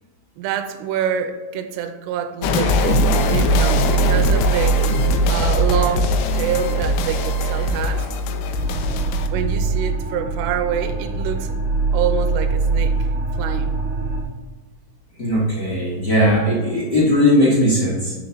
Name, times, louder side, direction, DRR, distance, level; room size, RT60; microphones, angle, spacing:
voice 1, 0.4-8.1 9.3-11.6 11.9-13.8 16.6-16.7, right 8 dB, 80° right, 6 dB, 2.5 m, -26 dB
sound 1, 2.4-9.3, equal, 80° left, 2.5 m, -19 dB
sound 2, 8.5-14.2, right 3 dB, 40° right, 2.3 m, -23 dB
voice 2, 15.2-18.1, equal, 35° left, -7 dB, 1.7 m, -18 dB
8.8 x 5.5 x 6.3 m, 1.3 s
omnidirectional pair, 5.5 m